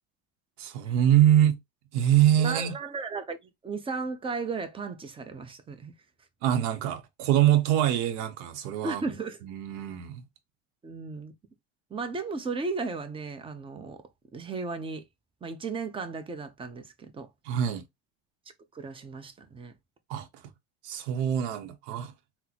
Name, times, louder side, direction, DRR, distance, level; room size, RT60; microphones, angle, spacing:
voice 1, 0.6-1.6 1.9-2.8 6.4-9.0 9.4-10.2 17.5-17.8 20.1-20.3 20.8-22.1, right 11 dB, 80° right, 0.7 m, -24 dB
voice 2, 2.4-3.4 3.6-5.9 8.8-9.4 10.8-11.3 11.9-14.0 14.3-15.0 15.4-17.3 18.7-19.7, right 4 dB, 15° right, 0.6 m, -35 dB
3.8 x 2.0 x 2.8 m
supercardioid pair, 120°, 33 cm